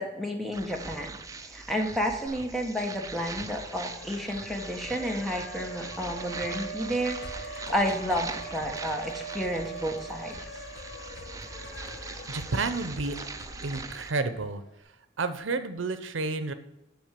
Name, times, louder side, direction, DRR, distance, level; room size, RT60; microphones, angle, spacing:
voice 1, 0.0-10.3, equal, ahead, 1 dB, 1.2 m, -31 dB
sound 1, 0.5-14.1, right 4 dB, 15° right, 0.5 m, -41 dB
Siren, 2.3-2.4 2.7-14.7, right 2 dB, 80° left, 1.6 m, -43 dB
sound 2, 7.0-13.8, left 1 dB, 55° left, 1.3 m, -48 dB
voice 2, 12.3-13.2 13.6-14.6 15.2-16.5, right 3 dB, 85° right, 11 dB, 0.8 m, -30 dB
10.5 x 4.4 x 7.5 m, 0.90 s
head